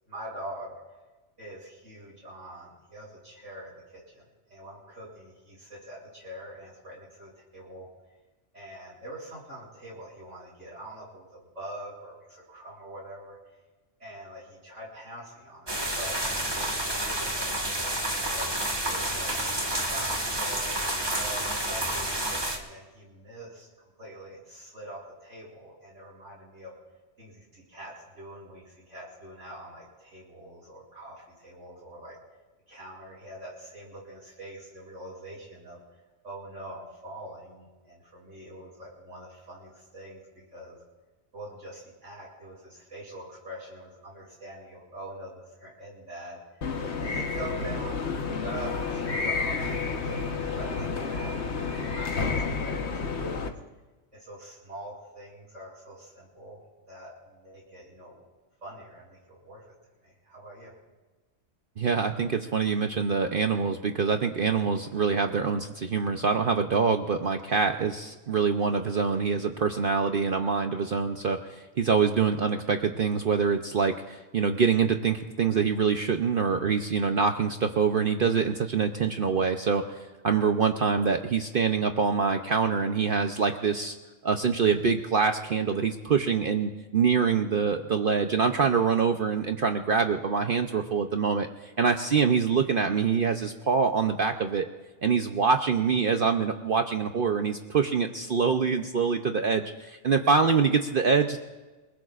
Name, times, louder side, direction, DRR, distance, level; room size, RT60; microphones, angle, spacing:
voice 1, 0.1-0.8 1.4-4.2 4.5-7.9 8.5-13.4 14.0-18.0 18.3-19.3 19.7-20.7 21.0-23.7 24.0-26.7 27.2-32.2 32.7-35.8 36.2-40.8 41.3-46.4 47.0-48.0 48.4-51.6 51.9-53.5 54.1-56.6 56.9-58.3 58.6-59.7 60.0-60.7, right 1 dB, 75° right, -4 dB, 8.0 m, -44 dB
sound 1, 15.7-22.6, right 1 dB, 20° right, 1.8 m, -29 dB
sound 2, 46.6-53.5, left 4 dB, 60° left, 1.4 m, -30 dB
voice 2, 61.8-83.9 84.2-94.7 95.0-101.4, right 5 dB, 50° right, 5 dB, 0.8 m, -25 dB
28.5 x 20.0 x 2.5 m, 1.2 s
omnidirectional pair, 1.3 m